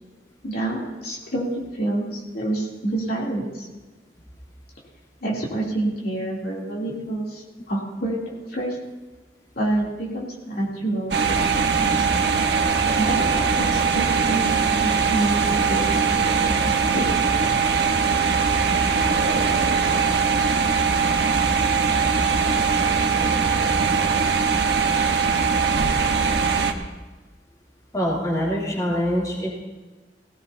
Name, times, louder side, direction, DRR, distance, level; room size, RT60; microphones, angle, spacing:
voice 1, 0.4-3.7 5.2-8.8 9.5-12.1 13.0-15.8 16.1-17.1, right 1 dB, 60° left, -4 dB, 3.1 m, -28 dB
sound 1, 11.1-26.7, right 5 dB, 75° right, 1.1 m, -21 dB
voice 2, 27.9-29.5, equal, 20° left, -5 dB, 3.0 m, -24 dB
18.5 x 17.5 x 2.8 m, 1.2 s
head